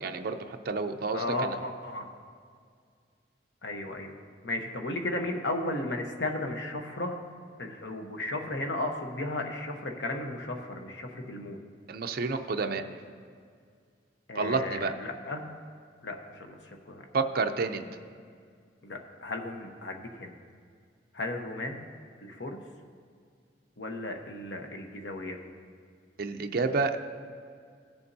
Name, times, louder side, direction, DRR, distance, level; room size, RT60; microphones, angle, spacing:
voice 1, 0.0-1.6 11.9-12.8 14.3-14.9 17.1-17.9 26.2-27.0, right 4 dB, 55° right, 6 dB, 0.5 m, -29 dB
voice 2, 1.1-2.1 3.6-4.1 4.4-7.2 7.6-11.6 14.3-15.5 16.0-17.0 18.8-20.3 21.1-21.8 22.2-22.6 23.8-25.4, left 2 dB, 85° left, 3 dB, 1.0 m, -35 dB
16.5 x 7.0 x 2.7 m, 2.1 s
head